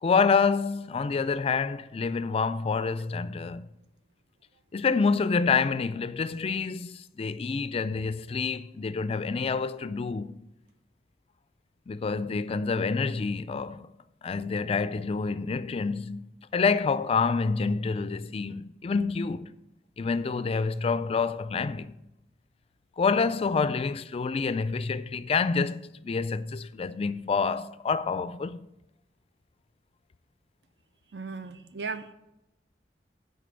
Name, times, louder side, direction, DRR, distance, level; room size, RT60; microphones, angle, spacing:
voice 1, 0.0-3.7 4.7-10.4 11.9-13.9 14.2-19.5 20.0-21.9 23.0-28.7, left 5 dB, 35° left, 0.3 m, -27 dB
voice 2, 31.1-32.1, right 4 dB, 75° right, 0.6 m, -36 dB
10.0 x 3.9 x 6.8 m
head